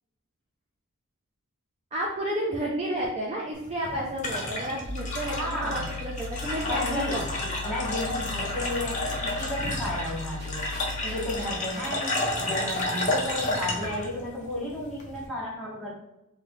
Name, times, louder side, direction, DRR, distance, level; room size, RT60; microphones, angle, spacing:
voice 1, 1.9-7.6 9.6-9.8, right 1 dB, 30° right, -3 dB, 0.3 m, -31 dB
sound 1, 3.5-15.3, left 2 dB, 35° left, 0.6 m, -31 dB
sound 2, 4.8-11.4, left 3 dB, 70° right, 0.6 m, -38 dB
voice 2, 5.2-5.9 6.6-7.3 7.6-10.7 11.0-16.0, left 1 dB, ahead, -8 dB, 0.9 m, -33 dB
sound 3, 9.1-9.8 10.1-10.2 10.4-11.8 12.0-12.5 12.7-13.5, right 1 dB, 45° right, 1.0 m, -45 dB
3.0 x 2.2 x 3.4 m, 0.91 s
head